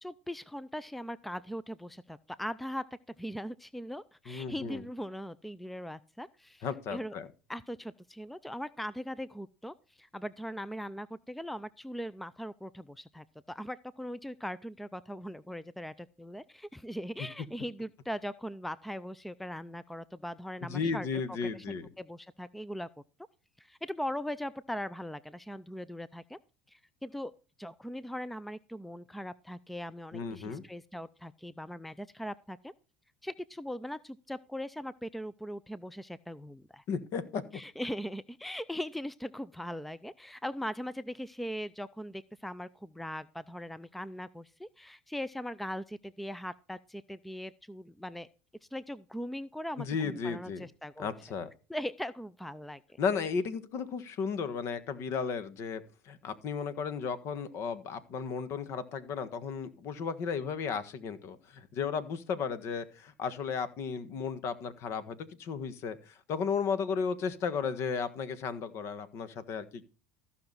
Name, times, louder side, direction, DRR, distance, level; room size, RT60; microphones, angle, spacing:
voice 1, 0.0-2.9 3.2-7.1 7.5-22.9 23.6-26.4 26.7-27.3 27.6-32.7 33.2-36.8 37.5-48.3 48.7-51.1 51.7-53.0, equal, ahead, 17 dB, 0.5 m, -40 dB
voice 2, 4.3-4.8 6.6-7.3 20.6-21.9 30.1-30.6 36.9-37.4 49.8-50.6 51.0-51.5 53.0-69.9, left 6 dB, 55° left, 14 dB, 1.5 m, -34 dB
14.5 x 5.9 x 4.0 m, 0.35 s
supercardioid pair, 90°, 6 cm